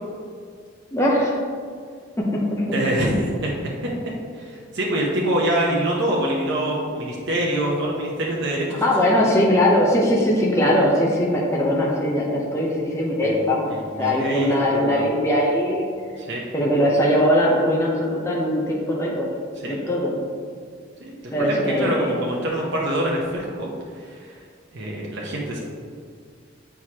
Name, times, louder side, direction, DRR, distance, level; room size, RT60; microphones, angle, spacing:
voice 1, 0.9-1.4 2.2-2.8 8.8-15.9 16.5-19.3 19.7-20.1 21.3-22.2, equal, 15° left, -4 dB, 0.7 m, -20 dB
voice 2, 2.7-3.5 4.3-9.3 13.2-13.3 13.7-15.0 16.2-16.5 19.6-19.8 21.0-24.4 24.7-25.6, right 1 dB, 60° right, -3 dB, 0.9 m, -25 dB
7.8 x 4.7 x 2.9 m, 2.1 s
head